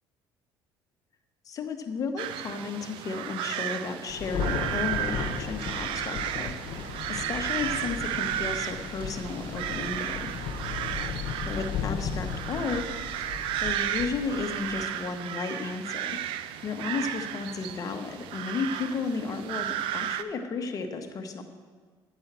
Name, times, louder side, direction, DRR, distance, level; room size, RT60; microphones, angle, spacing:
voice 1, 1.5-6.5 7.1-10.3 11.5-12.9 13.6-16.2 16.6-21.4, left 4 dB, 40° left, 4 dB, 1.1 m, -33 dB
sound 1, 2.2-20.2, right 11 dB, 75° right, 0.4 m, -34 dB
Thunder, 4.1-14.9, left 6 dB, 70° left, 1.0 m, -36 dB
9.1 x 5.4 x 7.5 m, 1.5 s
cardioid pair, 110°, 9 cm